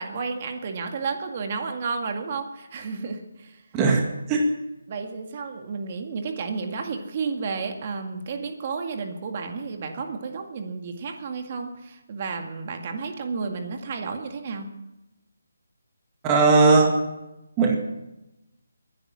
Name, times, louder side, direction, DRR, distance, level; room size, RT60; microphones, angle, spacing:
voice 1, 0.0-3.6 4.9-14.7, right 4 dB, 40° right, 4 dB, 2.0 m, -32 dB
voice 2, 3.7-4.5 16.2-17.0 17.6-17.8, right 3 dB, 20° right, 1 dB, 1.9 m, -18 dB
22.0 x 10.5 x 6.2 m, 0.95 s
figure-of-eight pair, 155°, 0 cm